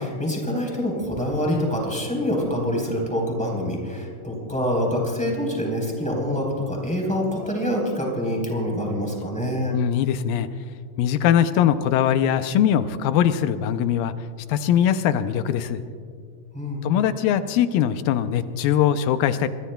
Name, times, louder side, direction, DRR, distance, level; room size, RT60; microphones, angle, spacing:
voice 1, 0.0-9.8 16.5-16.8, equal, ahead, -1 dB, 3.4 m, -25 dB
voice 2, 9.7-10.5 11.0-14.1 14.5-15.8 16.8-19.5, left 9 dB, 85° left, 10 dB, 2.4 m, -21 dB
26.5 x 22.0 x 2.3 m, 2.1 s
omnidirectional pair, 4.0 m